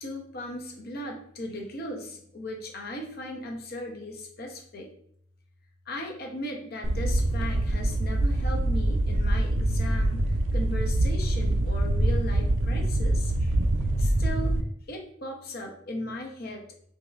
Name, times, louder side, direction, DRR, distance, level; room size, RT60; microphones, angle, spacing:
voice 1, 0.0-4.9 5.9-13.5 14.0-14.6 14.9-16.9, left 1 dB, 55° left, 1 dB, 0.9 m, -37 dB
sound 1, 6.8-14.6, right 1 dB, 75° right, 0.5 m, -25 dB
5.3 x 2.9 x 2.5 m, 0.64 s
head